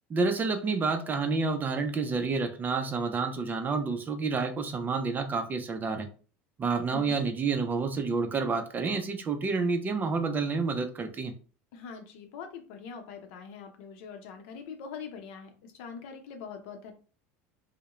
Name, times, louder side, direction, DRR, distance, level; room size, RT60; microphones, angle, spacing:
voice 1, 0.1-6.1 6.6-11.3, right 4 dB, 25° right, 7 dB, 0.4 m, -29 dB
voice 2, 6.9-7.2 11.7-16.9, left 6 dB, 70° left, 5 dB, 0.6 m, -43 dB
2.2 x 2.1 x 2.9 m, 0.38 s
supercardioid pair, 100°, 7 cm